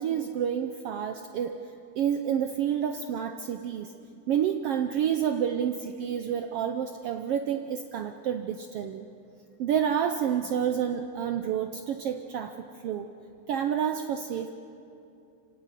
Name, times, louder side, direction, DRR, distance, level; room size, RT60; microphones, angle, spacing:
voice 1, 0.0-1.6 2.0-3.9 4.3-9.1 9.6-13.1 13.5-14.6, right 8 dB, 85° right, 7 dB, 1.3 m, -29 dB
26.5 x 17.5 x 8.2 m, 2.7 s
omnidirectional pair, 3.6 m